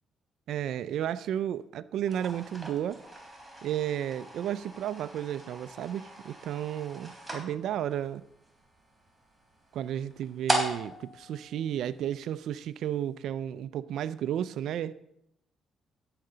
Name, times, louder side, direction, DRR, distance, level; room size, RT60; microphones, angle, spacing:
voice 1, 0.5-3.0 3.6-8.2 9.7-14.9, right 10 dB, 75° right, 16 dB, 0.4 m, -33 dB
sound 1, 2.0-12.4, right 1 dB, 5° right, 3.9 m, -39 dB
16.5 x 7.6 x 3.9 m, 0.79 s
cardioid pair, 90°, 0 cm